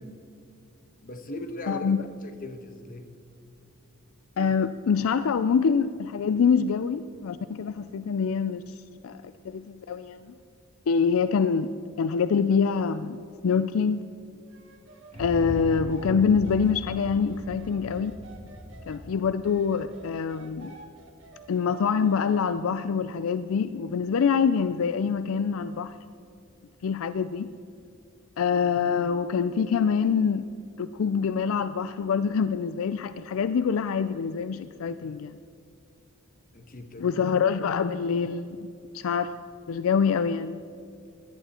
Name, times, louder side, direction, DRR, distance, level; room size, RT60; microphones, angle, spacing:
voice 1, 1.0-1.9 2.2-3.1 36.5-37.2, left 1 dB, 40° left, 6 dB, 1.2 m, -39 dB
voice 2, 1.7-2.0 4.4-8.8 9.0-10.3 10.9-11.7 12.0-14.1 15.2-18.1 18.9-20.7 21.5-25.9 26.8-27.5 28.4-30.5 30.8-35.4 37.0-39.3 39.7-40.6, left 6 dB, 75° left, 13 dB, 0.4 m, -25 dB
sound 1, 14.5-19.0 19.4-22.6, right 2 dB, 60° right, 1.4 m, -50 dB
sound 2, 15.1-21.2, equal, 30° right, 2.9 m, -40 dB
17.0 x 11.5 x 4.3 m, 2.5 s
head